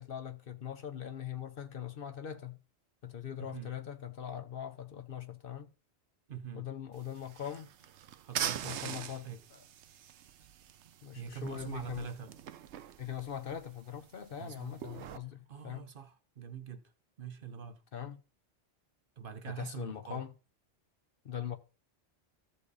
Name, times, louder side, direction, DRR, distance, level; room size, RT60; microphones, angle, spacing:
voice 1, 0.0-2.6 3.0-5.7 6.5-7.7 8.6-9.6 11.0-12.1 13.0-15.9 17.9-18.2 19.5-20.3 21.2-21.6, left 9 dB, 55° left, 1.0 m, -41 dB
voice 2, 3.4-3.7 6.3-6.7 8.2-9.4 11.1-12.3 14.4-14.8 15.5-16.8 17.2-17.8 19.2-20.2, right 8 dB, 55° right, 1.0 m, -44 dB
sound 1, 6.9-15.2, right 10 dB, 75° right, 0.9 m, -43 dB
14.0 x 5.5 x 4.1 m
omnidirectional pair, 1.2 m